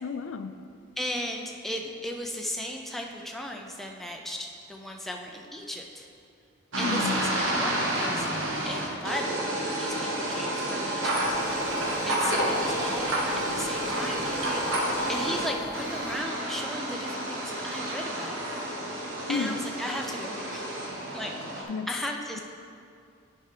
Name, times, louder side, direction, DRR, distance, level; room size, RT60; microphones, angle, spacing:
voice 1, 0.0-0.5 6.8-7.2 19.3-19.6 21.7-21.9, left 5 dB, 75° left, 9 dB, 0.4 m, -31 dB
voice 2, 1.0-6.1 6.8-8.3 8.6-11.4 12.1-14.6 15.1-18.4 19.0-20.7 21.1-22.4, equal, ahead, 1 dB, 0.5 m, -36 dB
sound 1, 6.7-15.5 15.7-21.6, right 1 dB, 80° right, 1.2 m, -30 dB
sound 2, 11.2-16.2, left 1 dB, 50° left, 0.9 m, -45 dB
9.9 x 4.6 x 5.0 m, 2.4 s
head